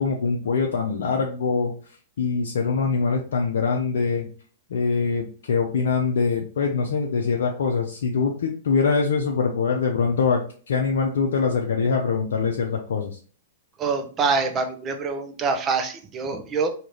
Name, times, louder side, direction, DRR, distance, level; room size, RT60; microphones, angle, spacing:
voice 1, 0.0-1.7 2.2-4.3 4.7-10.4 10.7-13.1, left 5 dB, 70° left, 1 dB, 0.6 m, -23 dB
voice 2, 13.8-16.7, right 4 dB, 25° right, 6 dB, 0.7 m, -25 dB
4.8 x 2.8 x 3.1 m, 0.42 s
hypercardioid pair, 110°, 0 cm